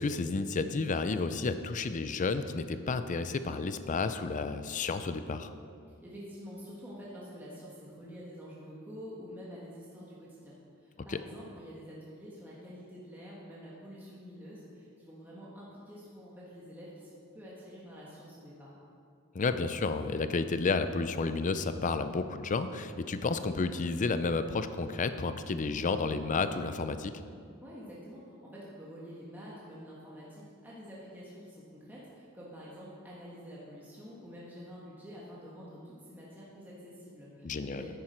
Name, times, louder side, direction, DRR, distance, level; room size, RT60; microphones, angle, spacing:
voice 1, 0.0-5.5 11.1-11.2 19.3-27.1 37.4-37.8, left 4 dB, 35° left, 10 dB, 0.5 m, -31 dB
voice 2, 5.9-18.7 27.6-37.9, equal, 10° right, -7 dB, 1.5 m, -48 dB
10.5 x 8.7 x 4.4 m, 2.3 s
head